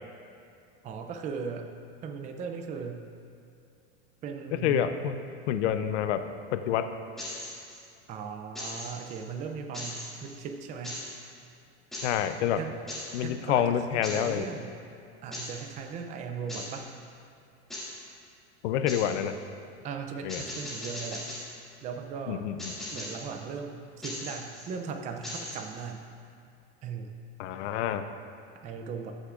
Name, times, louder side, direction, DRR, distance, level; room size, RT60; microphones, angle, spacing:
voice 1, 0.8-1.7 2.0-3.1 4.2-4.9 8.1-11.0 12.6-12.7 13.2-14.7 15.2-16.8 19.8-21.2 21.8-22.5 22.9-26.1 26.8-27.1 28.6-29.1, right 6 dB, 20° right, 5 dB, 0.4 m, -38 dB
voice 2, 4.6-5.2 5.5-6.2 6.5-6.9 12.0-12.6 13.1-14.5 18.6-19.3 20.2-20.4 22.3-22.7 27.4-28.0, left 10 dB, 75° left, 9 dB, 0.6 m, -27 dB
sound 1, 7.2-7.8 8.6-9.2 9.7-10.4 10.8-11.2 11.9-12.3 12.9-13.2 14.0-14.4 15.3-15.6 16.5-16.8 17.7-18.0 18.9-19.2 20.3-21.6 22.6-23.3 24.0-24.7 25.2-25.9, left 1 dB, ahead, 1.9 m, -39 dB
14.0 x 6.6 x 2.5 m, 2.5 s
supercardioid pair, 145°, 35 cm